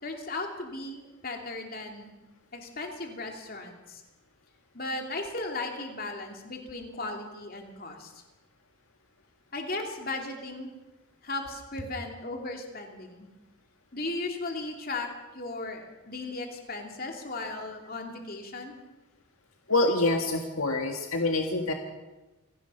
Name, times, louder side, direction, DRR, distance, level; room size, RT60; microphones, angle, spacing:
voice 1, 0.0-2.1 2.5-4.0 4.7-8.1 9.5-10.7 11.2-13.3 13.9-15.1 15.3-18.8, left 2 dB, 45° left, 2 dB, 3.0 m, -36 dB
voice 2, 19.7-21.7, left 2 dB, 80° left, 3 dB, 1.9 m, -26 dB
27.5 x 17.5 x 5.7 m, 1.1 s
head